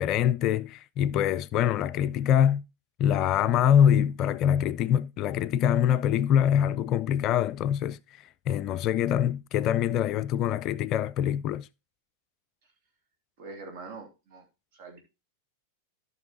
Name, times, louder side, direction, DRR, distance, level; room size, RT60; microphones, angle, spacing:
voice 1, 0.0-2.6 3.0-11.7, left 9 dB, 35° left, 0.4 m, -24 dB
voice 2, 13.4-14.4 14.7-15.0, right 3 dB, 50° right, 2.9 m, -43 dB
14.0 x 5.8 x 2.9 m
figure-of-eight pair, 90°, 0 cm